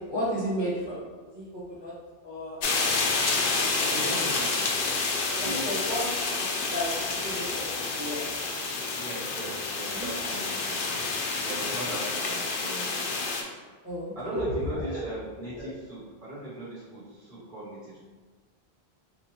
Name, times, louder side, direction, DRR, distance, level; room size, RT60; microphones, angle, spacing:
voice 1, 0.1-1.0 1.3-1.9 2.2-3.0 3.9-4.2 5.3-6.1 6.4-6.9 7.2-7.7 8.0-8.2 9.9-10.1 13.8-14.1 14.8-15.0 15.5-15.7, equal, 30° left, -9 dB, 0.8 m, -33 dB
sound 1, 2.6-13.4, left 3 dB, 60° left, 0.7 m, -29 dB
voice 2, 3.8-4.6 5.4-5.8 8.9-10.9 11.4-13.2 14.1-18.0, right 1 dB, 55° right, -8 dB, 1.2 m, -38 dB
4.2 x 2.3 x 2.8 m, 1.4 s
omnidirectional pair, 1.1 m